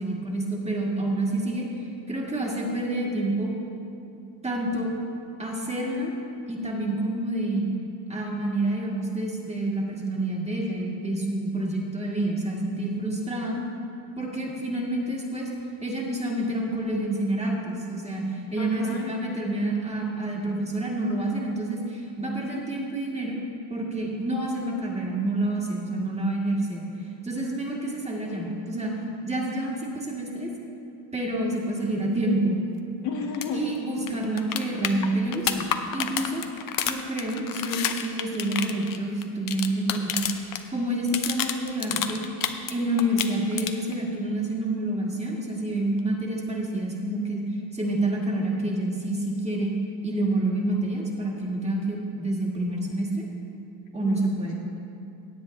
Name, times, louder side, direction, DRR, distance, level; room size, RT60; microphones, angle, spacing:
voice 1, 0.0-1.7 2.1-3.5 4.4-4.9 5.4-6.1 6.5-7.7 8.1-13.6 14.2-15.5 15.8-23.4 23.7-26.8 27.2-28.9 29.2-30.5 31.1-32.6 33.5-36.4 36.8-40.5 40.7-42.2 42.7-47.4 47.7-49.7 50.0-53.3 53.9-54.6, right 1 dB, 15° right, -3 dB, 1.8 m, -28 dB
voice 2, 18.6-19.4 33.0-33.6 54.0-54.2, left 6 dB, 70° left, -1 dB, 1.9 m, -33 dB
sound 1, 33.3-33.5 33.7-33.8 34.1-40.6 40.9-42.7 43.0-43.9 46.0-46.1, left 9 dB, 45° left, 0.7 m, -29 dB
17.5 x 8.1 x 3.2 m, 2.8 s
cardioid pair, 110°, 48 cm